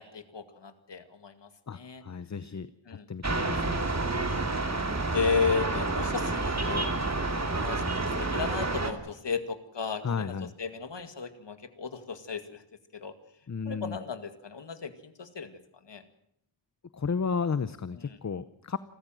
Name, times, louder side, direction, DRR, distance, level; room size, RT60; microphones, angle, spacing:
voice 1, 0.0-2.0 2.9-3.1 5.1-6.9 7.5-7.8 8.2-12.6 12.9-13.1 13.6-15.6 15.9-16.0 17.9-18.2, left 5 dB, 70° left, 9 dB, 2.2 m, -34 dB
voice 2, 1.7-2.7 3.1-3.8 10.0-10.5 13.5-14.0 16.9-18.8, left 5 dB, 40° left, 14 dB, 0.8 m, -33 dB
sound 1, 3.2-8.9, right 2 dB, 35° right, 2.7 m, -29 dB
28.5 x 14.0 x 7.7 m, 0.75 s
wide cardioid pair, 85°, 45 cm